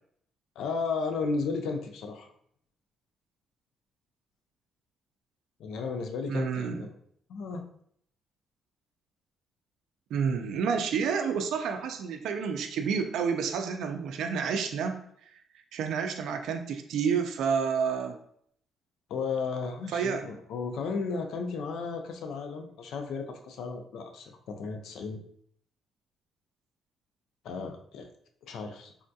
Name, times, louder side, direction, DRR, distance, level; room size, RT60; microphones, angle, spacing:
voice 1, 0.6-2.3 5.6-6.9 7.3-7.6 19.1-25.2 27.4-28.1 28.4-28.9, left 4 dB, 75° left, 5 dB, 0.4 m, -34 dB
voice 2, 6.3-6.8 10.1-15.0 15.7-18.1 19.9-20.2, right 6 dB, 75° right, 6 dB, 0.4 m, -29 dB
3.5 x 2.3 x 2.6 m, 0.66 s
cardioid pair, 165°, 0 cm